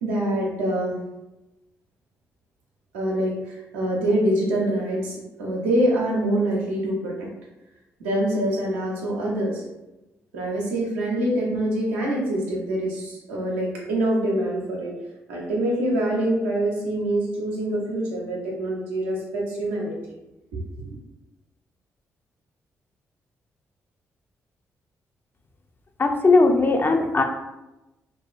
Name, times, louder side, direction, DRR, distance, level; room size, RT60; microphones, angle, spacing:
voice 1, 0.0-1.0 2.9-7.3 8.0-9.6 10.3-14.9 15.3-20.0 20.5-20.9, right 1 dB, 85° right, -4 dB, 0.5 m, -25 dB
voice 2, 26.0-27.2, left 3 dB, 30° left, 4 dB, 0.4 m, -18 dB
2.4 x 2.3 x 2.3 m, 0.99 s
hypercardioid pair, 40°, 7 cm